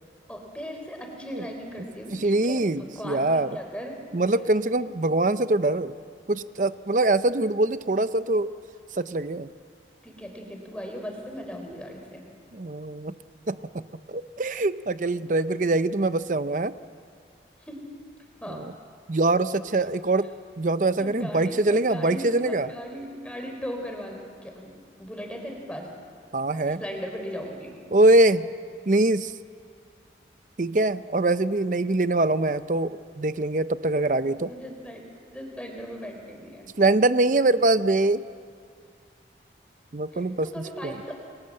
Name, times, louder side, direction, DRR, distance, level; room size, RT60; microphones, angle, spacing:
voice 1, 0.3-4.0 10.0-12.2 17.7-17.8 18.4-18.6 21.0-24.7 25.0-25.9 26.8-27.8 34.4-36.7 40.1-41.1, equal, 5° left, 2 dB, 4.3 m, -38 dB
voice 2, 2.1-3.5 4.1-5.9 6.3-8.5 9.0-9.5 12.5-13.1 13.5-13.6 14.1-16.7 18.5-18.7 19.1-22.7 26.3-26.8 27.9-28.5 28.9-29.3 30.6-34.5 36.8-38.3 39.9-41.0, right 2 dB, 45° right, 13 dB, 0.6 m, -23 dB
30.0 x 22.5 x 7.7 m, 2.2 s
head